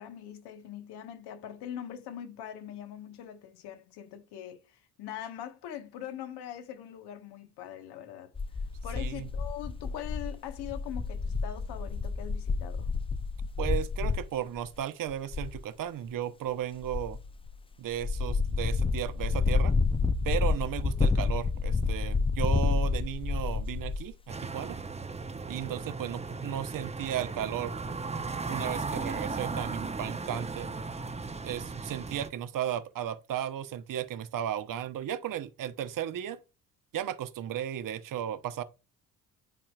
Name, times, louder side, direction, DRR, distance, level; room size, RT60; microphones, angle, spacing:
voice 1, 0.0-8.3 8.8-12.9, left 10 dB, 65° left, 1.4 m, -42 dB
sound 1, 8.3-14.3 14.6-14.8 15.1-15.6 16.8-17.6 17.9-24.1, left 4 dB, 15° left, 0.5 m, -29 dB
voice 2, 9.0-9.3 13.6-17.2 17.8-19.7 20.2-24.8 25.5-27.7 28.5-30.7 31.4-36.4 36.9-38.6, right 10 dB, 50° right, 0.9 m, -35 dB
sound 2, 24.3-32.3, right 4 dB, 15° right, 0.9 m, -36 dB
11.0 x 4.3 x 2.4 m
hypercardioid pair, 60°, 43 cm